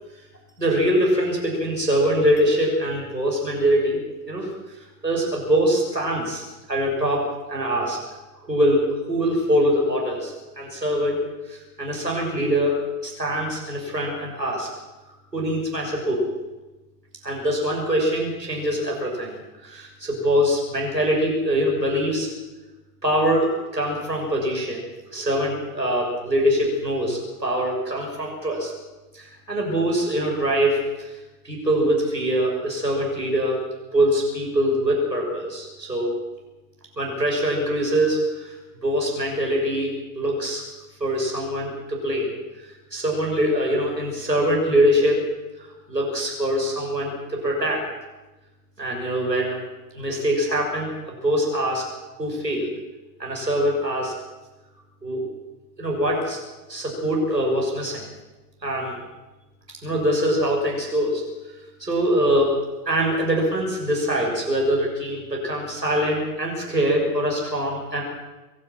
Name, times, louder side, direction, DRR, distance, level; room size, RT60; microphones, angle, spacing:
voice 1, 0.6-4.5 4.7-6.4 6.7-8.0 8.4-11.2 11.5-12.7 13.0-14.7 15.3-16.2 17.2-19.4 19.6-22.3 23.0-24.8 25.1-28.7 29.1-31.1 31.4-33.6 33.9-36.1 37.0-38.5 38.8-40.6 41.0-42.3 42.9-45.2 45.6-47.8 48.8-49.6 49.9-51.8 52.2-52.7 53.2-54.1 55.0-55.2 55.8-56.4 56.7-58.0 58.6-59.0 59.8-61.2 61.8-62.6 62.8-68.0, equal, 85° right, -1 dB, 6.8 m, -23 dB
23.0 x 12.5 x 9.2 m, 1.1 s
figure-of-eight pair, 95°, 48 cm